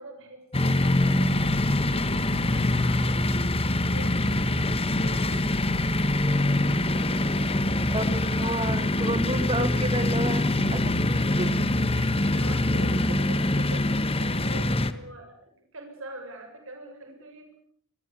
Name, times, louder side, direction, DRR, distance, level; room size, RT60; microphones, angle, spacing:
voice 1, 0.0-1.6 2.4-4.1 4.8-7.1 12.3-17.6, right 2 dB, 65° right, 4 dB, 7.1 m, -44 dB
sound 1, 0.5-14.9, left 1 dB, 25° left, 1.6 m, -24 dB
voice 2, 7.9-11.5 12.0-12.1, right 1 dB, 25° right, 11 dB, 1.8 m, -31 dB
29.5 x 22.5 x 7.0 m, 0.62 s
head